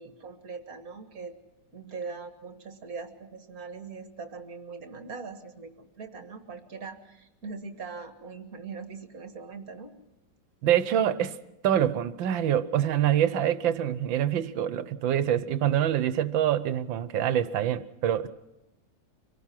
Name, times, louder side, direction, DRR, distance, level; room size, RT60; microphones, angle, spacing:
voice 1, 0.0-1.4 1.7-9.9, right 4 dB, 50° right, 7 dB, 2.1 m, -41 dB
voice 2, 10.6-11.4 11.6-18.3, right 10 dB, 80° right, 14 dB, 1.6 m, -25 dB
25.0 x 18.5 x 5.9 m, 0.98 s
omnidirectional pair, 2.1 m